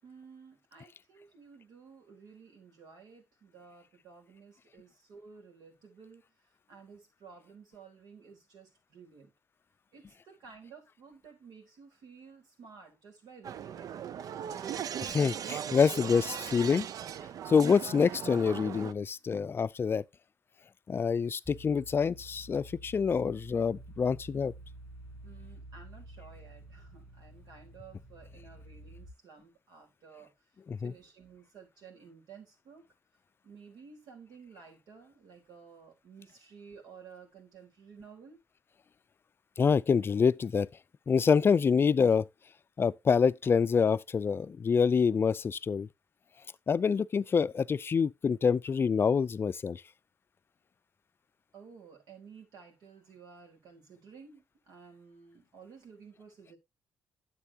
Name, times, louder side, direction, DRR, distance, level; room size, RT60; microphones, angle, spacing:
voice 1, 0.0-6.2 6.7-9.3 9.9-13.9 25.2-30.3 30.8-32.8 33.4-38.4 51.5-56.6, right 5 dB, 75° right, 4.0 m, -53 dB
sound 1, 13.4-18.9, right 9 dB, 60° right, 0.5 m, -38 dB
voice 2, 15.0-16.9 17.5-20.0 20.9-24.5 30.7-30.9 39.6-40.7 41.1-42.3 42.8-45.9 46.7-49.8, left 6 dB, 35° left, 0.4 m, -26 dB
sound 2, 21.5-29.1, right 1 dB, 10° right, 2.2 m, -50 dB
10.0 x 7.5 x 2.9 m
cardioid pair, 100°, 7 cm